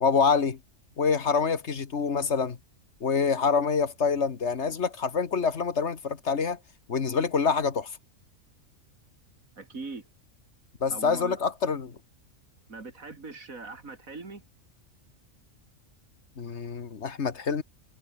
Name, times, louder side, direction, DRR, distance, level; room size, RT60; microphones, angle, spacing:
voice 1, 0.0-0.6 1.0-2.6 3.0-6.6 6.9-7.9 10.8-12.0 16.4-17.6, left 5 dB, 55° left, 1.7 m, -26 dB
voice 2, 9.6-10.0 10.9-11.4 12.7-14.4, right 3 dB, 85° right, 3.6 m, -41 dB
omnidirectional pair, 1.4 m